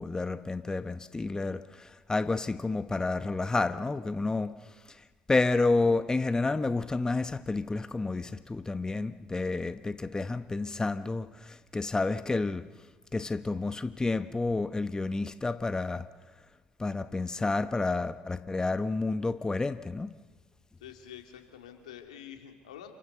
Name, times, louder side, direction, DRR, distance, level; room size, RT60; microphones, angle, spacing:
voice 1, 0.0-4.6 5.3-12.6 13.1-16.1 16.8-20.1, left 3 dB, 20° left, 1.0 m, -30 dB
voice 2, 20.8-22.9, left 9 dB, 90° left, 2.8 m, -47 dB
28.5 x 25.0 x 6.9 m
hypercardioid pair, 60°, 4 cm